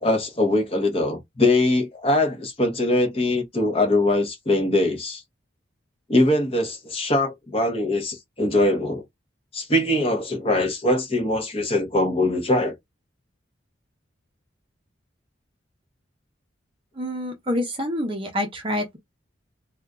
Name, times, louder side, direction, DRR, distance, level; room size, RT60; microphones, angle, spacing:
voice 1, 0.0-5.2 6.1-9.0 9.5-12.7, left 1 dB, 30° left, 0.9 m, -22 dB
voice 2, 17.0-19.0, left 1 dB, 25° right, 0.7 m, -27 dB
2.5 x 2.3 x 3.5 m
head